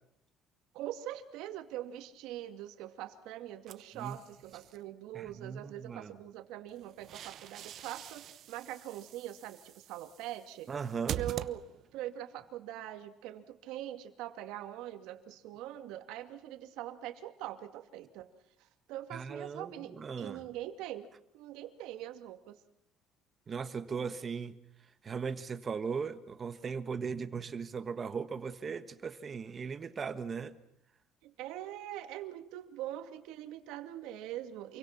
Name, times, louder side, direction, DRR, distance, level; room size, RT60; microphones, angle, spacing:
voice 1, 0.7-10.7 11.1-11.6 11.9-18.3 18.9-21.1 21.3-22.6 31.2-34.8, right 13 dB, 80° right, 2.3 m, -43 dB
sound 1, 3.7-4.8 6.7-12.1, right 11 dB, 50° right, 1.0 m, -44 dB
voice 2, 5.1-6.1 10.7-11.2 19.1-20.4 23.5-24.6 25.0-30.5, right 5 dB, 30° right, 1.5 m, -38 dB
28.5 x 23.5 x 6.0 m
cardioid pair, 145°, 0 cm